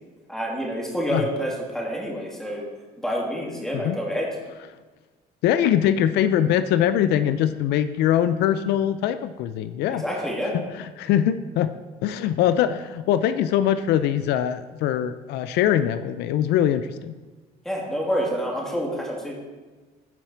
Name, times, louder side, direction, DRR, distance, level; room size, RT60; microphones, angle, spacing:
voice 1, 0.3-2.7 3.0-4.3 9.9-10.6 17.6-19.4, equal, 5° left, -3 dB, 2.5 m, -28 dB
voice 2, 5.4-10.0 10.5-11.7 12.0-17.1, left 10 dB, 80° left, 12 dB, 0.4 m, -22 dB
12.0 x 4.9 x 4.5 m, 1.3 s
cardioid pair, 110°, 17 cm